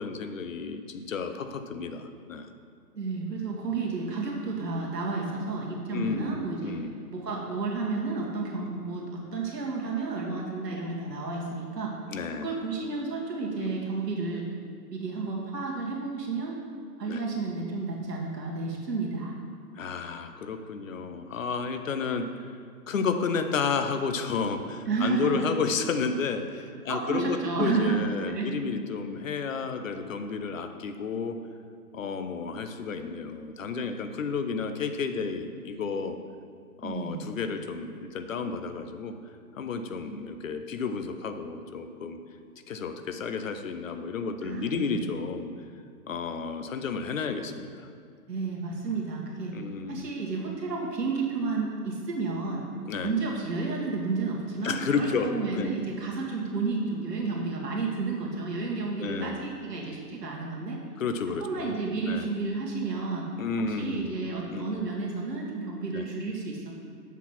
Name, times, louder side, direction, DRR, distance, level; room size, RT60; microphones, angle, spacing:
voice 1, 0.0-2.5 5.9-6.9 12.1-12.5 13.6-13.8 17.1-17.2 19.8-22.3 22.9-31.4 31.9-36.2 36.8-39.1 39.6-42.2 42.7-45.5 46.1-47.9 49.5-50.0 52.9-53.1 54.6-55.7 59.0-59.5 61.0-61.7 62.1-62.3 63.4-64.1 64.5-64.9 65.9-66.1, left 5 dB, 55° left, 8 dB, 0.6 m, -32 dB
voice 2, 2.9-6.8 7.1-12.0 12.4-14.5 14.9-16.6 17.0-19.3 21.0-21.1 24.9-25.4 26.9-28.5 36.8-37.3 44.4-45.0 48.3-49.6 49.9-52.7 53.0-60.8 61.4-63.3 63.6-66.7, right 4 dB, 90° right, -2 dB, 1.8 m, -31 dB
7.3 x 4.1 x 5.7 m, 2.2 s
hypercardioid pair, 165°, 48 cm